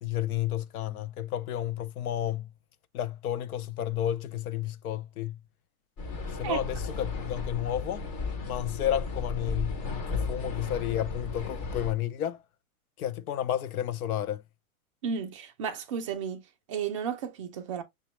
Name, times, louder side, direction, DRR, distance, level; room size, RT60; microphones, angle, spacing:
voice 1, 0.0-2.5 2.9-5.4 6.3-8.1 8.5-12.4 13.0-14.4, left 11 dB, 75° left, 0.7 m, -31 dB
sound 1, 6.0-11.9, left 3 dB, 25° left, 0.6 m, -34 dB
voice 2, 15.0-16.4 16.7-17.8, right 7 dB, 25° right, 0.4 m, -33 dB
5.8 x 2.2 x 3.0 m
supercardioid pair, 155°, 44 cm